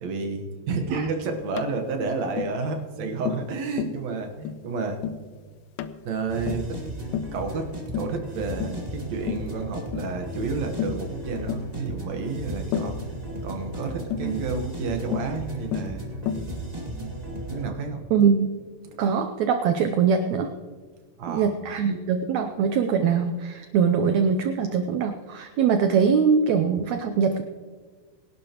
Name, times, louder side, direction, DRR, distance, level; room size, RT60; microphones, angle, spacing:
voice 1, 0.0-5.0 6.0-13.0 13.4-16.1 16.9-17.1 17.5-18.0 18.8-19.0 21.2-21.5, right 4 dB, 60° right, 4 dB, 2.3 m, -31 dB
Tap, 1.6-1.8 2.4-2.6 3.3-3.5 3.8-4.0 4.5-4.7 5.0-5.3 5.8-6.0 6.5-6.7 7.1-7.4 7.9-8.2 8.6-8.9 9.3-9.5 9.9-10.1 10.8-11.0 11.5-11.7 12.7-13.0 14.1-14.3 15.1-15.4 15.7-16.0 16.3-16.5, left 8 dB, 85° left, 2.3 m, -30 dB
sound 1, 6.3-17.7, right 1 dB, 20° right, 1.2 m, -35 dB
voice 2, 18.1-18.5 19.0-20.5 21.3-27.4, right 6 dB, 75° right, 7 dB, 1.7 m, -22 dB
22.5 x 12.0 x 3.0 m, 1.5 s
omnidirectional pair, 3.9 m